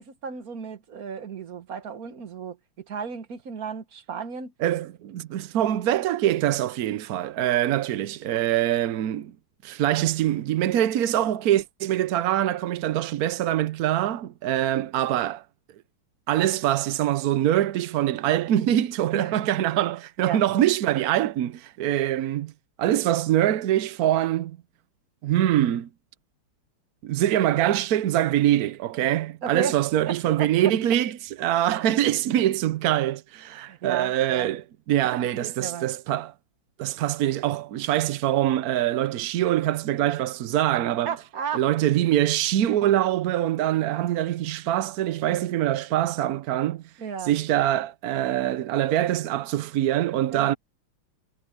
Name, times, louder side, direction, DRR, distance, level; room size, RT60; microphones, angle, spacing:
voice 1, 0.0-4.5 19.1-19.4 20.2-20.4 29.4-29.8 30.1-30.7 33.6-34.5 35.4-35.9 41.0-41.7 47.0-47.3 50.3-50.6, right 6 dB, 45° right, 1.6 m, -34 dB
voice 2, 4.6-9.3 9.6-15.4 16.3-22.5 22.8-24.6 25.2-25.9 27.0-36.3 36.8-41.1 41.5-46.8 47.3-50.5, right 12 dB, 75° right, 0.8 m, -24 dB
omnidirectional pair, 2.4 m